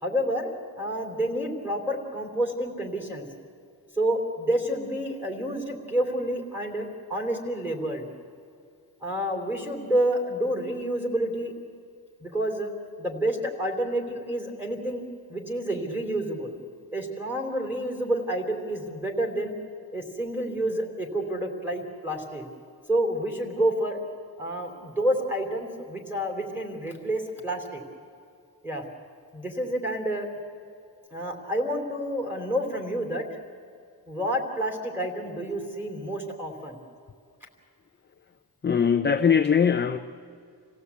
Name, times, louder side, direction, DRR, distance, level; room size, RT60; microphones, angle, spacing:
voice 1, 0.0-3.3 4.0-8.1 9.0-11.5 12.2-12.7 13.0-16.6 16.9-19.5 19.9-22.5 22.9-24.0 24.4-27.8 28.6-28.8 29.3-30.3 31.1-33.3 34.1-36.8, right 1 dB, 5° right, 0 dB, 3.3 m, -29 dB
voice 2, 38.6-40.0, left 7 dB, 25° left, 7 dB, 0.5 m, -21 dB
27.5 x 16.5 x 8.3 m, 2.4 s
wide cardioid pair, 165°, 41 cm